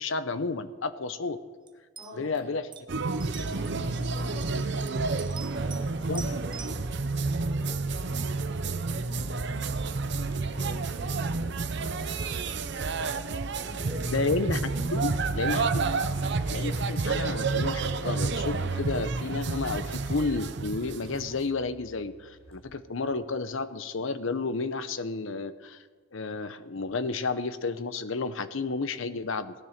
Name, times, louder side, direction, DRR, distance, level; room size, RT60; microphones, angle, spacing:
voice 1, 0.0-1.4 2.1-2.6 6.1-6.2 14.1-15.9 16.5-25.8 26.1-29.5, left 4 dB, 70° left, 12 dB, 0.7 m, -31 dB
sound 1, 1.7-1.8 2.0-2.4 2.7-2.8 3.2-3.8 4.4-5.8 6.1-6.8, right 6 dB, 20° right, 0.8 m, -44 dB
voice 2, 2.0-2.5 3.1-9.8 10.2-14.2 14.6-15.3, equal, 10° left, -5 dB, 5.0 m, -47 dB
sound 2, 2.9-21.4, right 3 dB, 55° right, 0.7 m, -30 dB
sound 3, 15.6-23.4, right 2 dB, 30° left, 5.2 m, -54 dB
17.0 x 10.5 x 6.5 m, 1.5 s
head